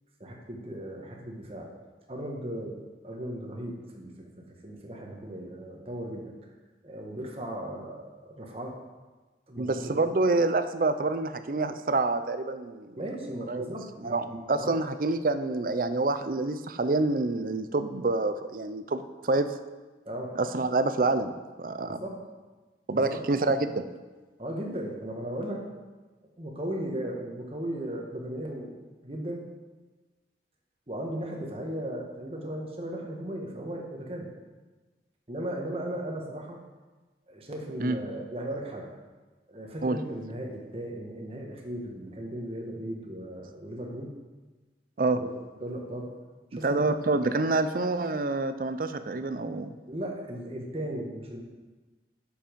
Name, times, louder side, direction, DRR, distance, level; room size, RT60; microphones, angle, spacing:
voice 1, 0.2-1.7 2.1-2.8 3.0-6.3 6.8-8.7 9.5-10.0 13.0-14.8 20.0-20.3 21.9-22.2 22.9-23.6 24.4-25.6 26.4-28.8 29.0-29.4 30.9-34.3 35.3-36.6 37.3-38.9 39.5-44.1 45.1-46.1 46.5-47.0 47.5-47.7 49.9-51.4, right 1 dB, 30° right, 0 dB, 1.4 m, -36 dB
voice 2, 9.6-13.0 13.5-13.7 14.0-19.5 20.4-21.3 21.6-22.0 22.9-23.8 37.8-38.0 39.8-40.0 45.0-45.2 46.6-49.7, right 3 dB, 50° right, 10 dB, 0.5 m, -27 dB
7.8 x 7.0 x 5.2 m, 1.3 s
head